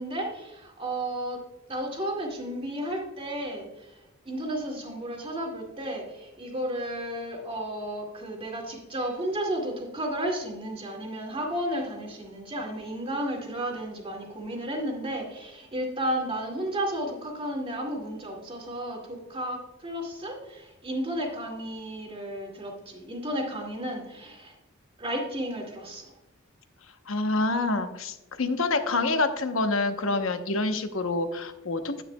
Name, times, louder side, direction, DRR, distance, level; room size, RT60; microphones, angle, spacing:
voice 1, 0.0-1.4 1.7-24.5 25.0-26.1, right 1 dB, 25° right, 1 dB, 2.1 m, -33 dB
voice 2, 27.1-32.0, left 3 dB, 70° left, 8 dB, 0.8 m, -27 dB
9.8 x 9.7 x 2.2 m, 0.98 s
head